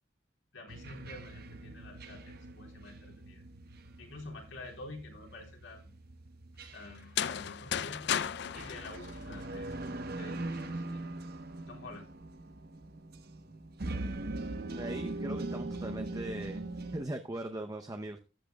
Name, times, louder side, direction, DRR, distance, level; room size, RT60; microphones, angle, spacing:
voice 1, 0.5-3.4 4.0-6.0 6.7-8.0 8.5-11.1 11.7-12.1, left 2 dB, 80° left, 1 dB, 3.8 m, -48 dB
sound 1, 0.7-17.0, right 2 dB, 55° right, 1.0 m, -42 dB
sound 2, 7.0-9.9, left 9 dB, 60° left, 0.5 m, -35 dB
voice 2, 14.7-16.7 16.9-18.2, right 1 dB, 20° right, 6 dB, 0.7 m, -39 dB
15.0 x 10.5 x 2.3 m, 0.33 s
head